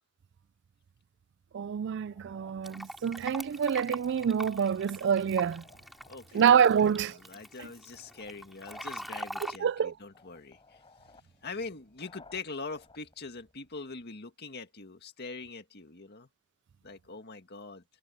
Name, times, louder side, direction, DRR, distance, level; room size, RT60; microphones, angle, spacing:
voice 1, 1.5-5.6 6.3-7.2 7.6-7.7 9.6-9.9, right 7 dB, 55° right, 0.3 m, -26 dB
sound 1, 2.1-14.1, left 3 dB, 25° left, 5.6 m, -60 dB
Fill (with liquid), 2.6-9.6, equal, ahead, 4.0 m, -43 dB
voice 2, 6.1-6.5 6.8-10.8 11.4-16.3 16.8-17.8, left 4 dB, 50° left, 2.0 m, -43 dB
head